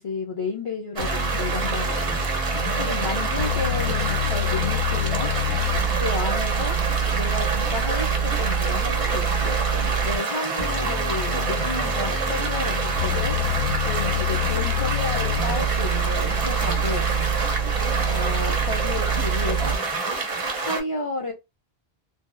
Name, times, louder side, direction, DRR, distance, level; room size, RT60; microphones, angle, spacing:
voice 1, 0.0-5.3 5.9-6.8 7.1-9.6 10.0-13.4 13.8-17.1 18.0-19.8 20.6-21.3, left 3 dB, 40° left, 0.5 m, -32 dB
sound 1, 1.0-10.2 10.6-19.8, right 2 dB, 85° left, 1.2 m, -26 dB
sound 2, 1.0-20.8, right 3 dB, 40° right, 0.5 m, -27 dB
2.6 x 2.3 x 2.5 m
omnidirectional pair, 1.1 m